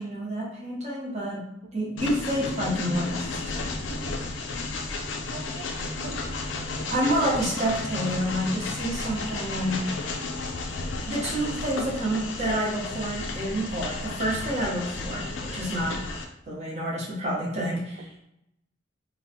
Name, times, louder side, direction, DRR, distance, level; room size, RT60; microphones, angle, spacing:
voice 1, 0.0-1.5 1.7-3.4 6.9-9.9 11.0-16.0 16.5-18.2, right 1 dB, 35° right, -4 dB, 0.9 m, -28 dB
Train, 2.0-16.2, left 3 dB, 75° left, 0.4 m, -33 dB
voice 2, 5.0-6.9 18.0-18.1, right 5 dB, 80° right, 1 dB, 0.3 m, -44 dB
3.1 x 2.1 x 2.8 m, 0.82 s
head